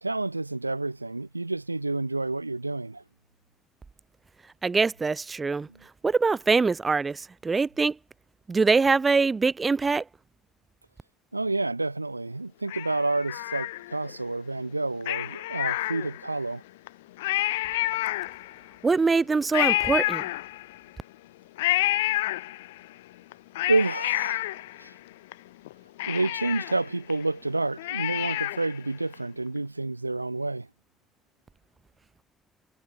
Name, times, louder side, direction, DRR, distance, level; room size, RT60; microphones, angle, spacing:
voice 1, 0.0-3.0 5.7-5.8 11.3-16.6 23.7-24.5 24.8-25.0 26.1-30.7, right 2 dB, 90° right, 1.0 m, -29 dB
voice 2, 4.6-5.7 6.0-8.0 8.5-10.0 18.8-20.2, right 4 dB, 30° right, 3.9 m, -23 dB
Cat, 12.7-14.2 15.0-16.4 16.9-17.0 17.2-18.7 19.5-20.9 21.6-22.9 23.3-25.3 25.7-25.8 26.0-28.8 29.1-29.2, left 17 dB, 75° left, 2.4 m, -29 dB
figure-of-eight pair, 45°, 0 cm